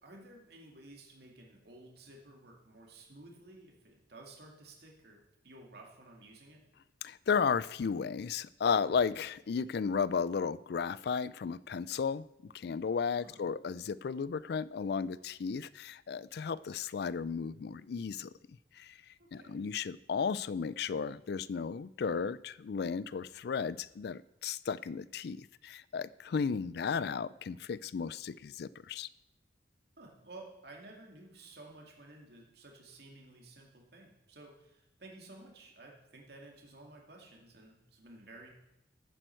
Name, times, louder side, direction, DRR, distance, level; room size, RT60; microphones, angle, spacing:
voice 1, 0.0-6.6 13.1-13.4 19.2-19.7 30.0-38.5, right 2 dB, 65° right, 0 dB, 2.3 m, -54 dB
voice 2, 7.0-18.3 18.8-19.0 19.3-29.1, left 6 dB, 60° left, 19 dB, 0.4 m, -34 dB
14.0 x 9.1 x 4.5 m, 0.89 s
head